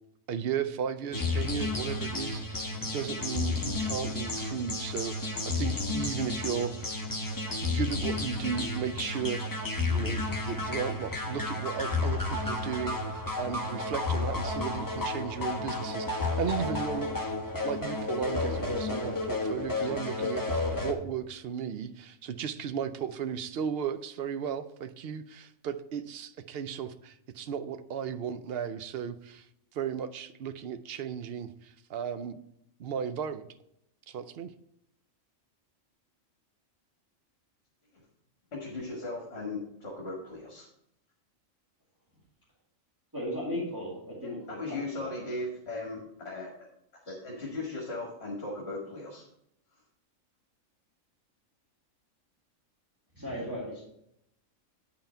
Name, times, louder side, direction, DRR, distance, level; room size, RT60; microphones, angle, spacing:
voice 1, 0.3-7.0 7.7-17.2 17.6-29.5 29.7-32.4 32.8-33.5 34.1-34.5, right 8 dB, 65° right, 11 dB, 0.6 m, -35 dB
sound 1, 1.1-20.9, left 3 dB, 20° left, 0.8 m, -32 dB
voice 2, 38.5-40.7 44.2-46.7 47.0-49.2 49.7-49.8, left 2 dB, 50° left, -3 dB, 1.9 m, -38 dB
voice 3, 43.1-45.1 53.1-53.9, equal, 15° right, -8 dB, 2.2 m, -36 dB
8.9 x 5.7 x 4.3 m, 0.77 s
omnidirectional pair, 1.4 m